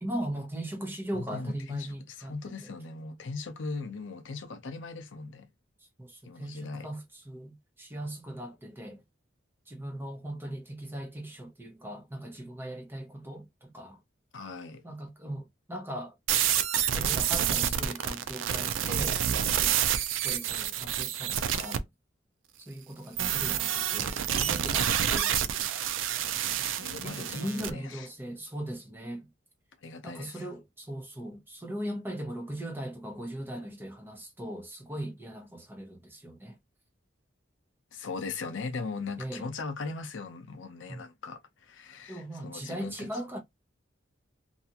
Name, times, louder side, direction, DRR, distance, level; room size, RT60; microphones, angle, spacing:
voice 1, 0.0-2.7 6.0-9.0 9.7-14.0 14.8-16.1 16.9-21.9 22.6-25.3 27.0-29.3 30.0-36.6 39.2-39.5 40.9-41.0 42.1-43.4, right 1 dB, 10° right, 0.7 m, -39 dB
voice 2, 1.1-5.5 6.2-6.9 14.3-14.8 26.8-28.1 29.8-30.4 37.9-43.1, left 4 dB, 75° left, 0.6 m, -39 dB
sound 1, 16.3-21.8 23.2-27.7, right 9 dB, 80° right, 0.4 m, -28 dB
2.6 x 2.4 x 2.7 m
head